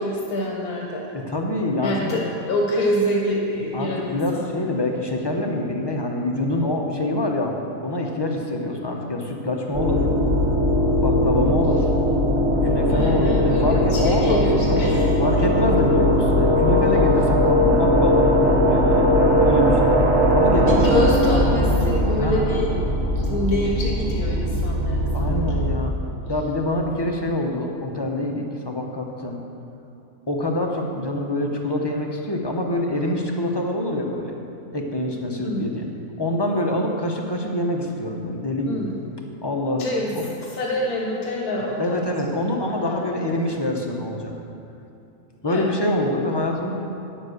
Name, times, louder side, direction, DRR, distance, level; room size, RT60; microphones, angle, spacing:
voice 1, 0.0-1.1 1.8-4.7 12.9-15.1 18.4-18.5 20.6-22.9 23.2-25.7 35.4-35.7 38.6-39.0 39.8-42.0 42.8-43.0 45.4-45.7, left 1 dB, 90° left, -2 dB, 1.7 m, -26 dB
voice 2, 1.1-2.2 3.7-7.5 7.8-10.0 11.0-11.9 12.5-14.8 15.2-19.0 19.4-20.0 20.3-20.9 22.2-22.9 25.1-25.9 26.3-29.4 30.3-34.3 34.7-35.9 36.2-38.9 39.4-39.9 40.2-40.3 41.8-44.3 45.4-46.9, left 1 dB, 20° left, 1 dB, 0.7 m, -25 dB
sound 1, 9.7-25.8, equal, 50° right, 1.4 m, -19 dB
9.9 x 7.3 x 6.5 m, 2.7 s
omnidirectional pair, 1.5 m